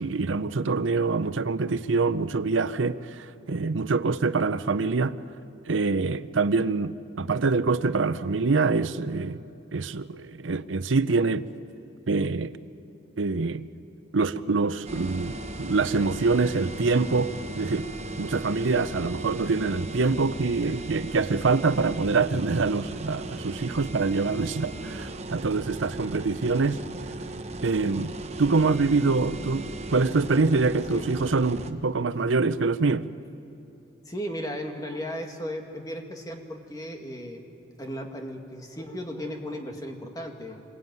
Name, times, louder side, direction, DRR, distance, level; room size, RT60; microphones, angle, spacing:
voice 1, 0.0-5.2 5.7-9.4 9.7-11.5 12.1-12.5 13.2-13.6 14.1-17.9 18.2-26.8 27.6-33.1, right 4 dB, 85° right, 14 dB, 0.7 m, -25 dB
sound 1, 14.9-31.7, right 2 dB, 35° right, 1.1 m, -37 dB
voice 2, 34.1-37.4 37.8-40.6, equal, 20° left, 3 dB, 2.0 m, -35 dB
27.0 x 22.0 x 9.4 m, 2.7 s
head